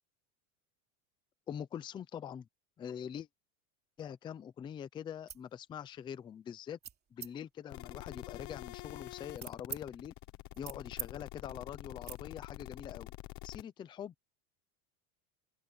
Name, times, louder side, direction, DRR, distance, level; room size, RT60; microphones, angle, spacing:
voice 1, 1.5-2.5 2.8-3.3 4.0-6.8 7.1-10.1 10.6-13.1 13.4-14.1, left 9 dB, 10° left, 0.4 m, -44 dB
sound 1, 5.1-5.5 5.9-6.3 6.8-7.3 8.0-9.8 10.2-11.1 11.4-11.6 12.0-12.2, right 7 dB, 20° right, 3.1 m, -46 dB
sound 2, 7.7-13.6, left 20 dB, 40° left, 1.0 m, -46 dB
open air
supercardioid pair, 155°, 44 cm